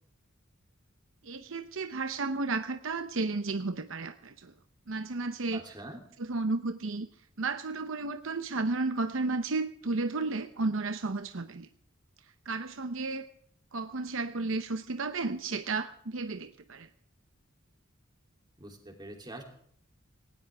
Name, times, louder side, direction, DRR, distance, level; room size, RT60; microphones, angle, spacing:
voice 1, 1.2-4.5 4.9-5.6 6.2-7.1 7.4-11.7 12.5-13.3 13.7-16.9, right 3 dB, 70° right, 9 dB, 0.9 m, -33 dB
voice 2, 5.5-6.0 18.6-19.4, right 1 dB, 20° right, 2 dB, 3.2 m, -44 dB
18.5 x 17.5 x 3.5 m, 0.63 s
head